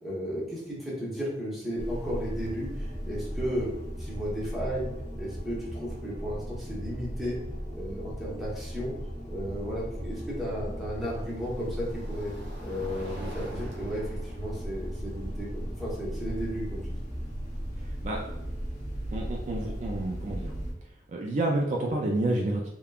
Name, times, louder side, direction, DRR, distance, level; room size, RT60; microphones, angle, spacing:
voice 1, 0.0-3.7 4.0-4.9 5.2-7.4 7.7-8.9 9.3-12.3 12.6-16.8, equal, ahead, -7 dB, 0.9 m, -34 dB
sound 1, 1.8-20.7, equal, 45° left, 0.7 m, -36 dB
sound 2, 3.9-4.3 6.2-6.3 9.3-17.4, equal, 80° right, 0.7 m, -48 dB
voice 2, 18.0-18.5 19.1-20.5 21.1-22.7, right 2 dB, 45° right, -1 dB, 0.3 m, -29 dB
3.4 x 2.2 x 2.3 m, 0.86 s
head